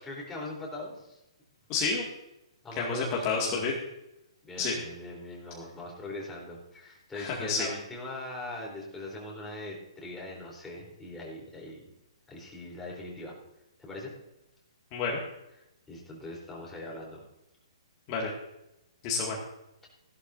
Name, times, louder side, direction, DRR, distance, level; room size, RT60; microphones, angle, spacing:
voice 1, 0.0-1.2 2.6-3.7 4.4-11.9 12.3-13.4 13.8-14.1 15.9-17.2 19.8-19.9, left 1 dB, 10° left, -3 dB, 3.7 m, -41 dB
voice 2, 1.7-2.0 2.8-3.7 4.6-4.7 7.1-7.7 14.9-15.2 18.1-18.3 19.0-19.4, left 4 dB, 30° left, -3 dB, 2.1 m, -29 dB
15.5 x 12.0 x 2.7 m, 0.88 s
hypercardioid pair, 145°, 3 cm